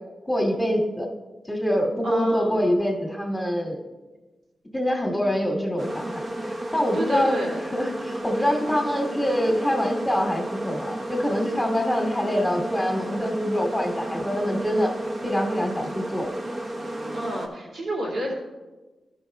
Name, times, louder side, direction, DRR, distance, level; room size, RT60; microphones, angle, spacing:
voice 1, 0.2-1.1 1.5-3.8 4.7-6.1 6.4-7.4 7.7-14.9 15.2-16.3, equal, 10° left, 2 dB, 1.3 m, -25 dB
voice 2, 2.0-2.6 6.9-7.6 17.1-18.3, equal, 85° right, -4 dB, 2.5 m, -29 dB
sound 1, 5.8-17.5, right 1 dB, 45° right, 1.0 m, -33 dB
12.5 x 5.3 x 3.5 m, 1.2 s
cardioid pair, 70°, 0 cm